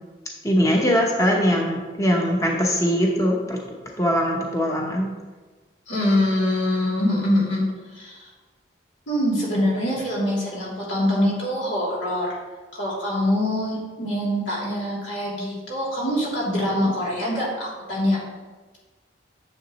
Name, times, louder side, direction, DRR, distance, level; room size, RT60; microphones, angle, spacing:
voice 1, 0.4-3.6 4.0-5.1, equal, 15° left, 0 dB, 0.8 m, -21 dB
voice 2, 5.9-7.6 7.9-8.3 9.1-12.4 12.7-18.2, left 1 dB, 85° left, -5 dB, 2.8 m, -24 dB
9.7 x 6.9 x 3.0 m, 1.3 s
head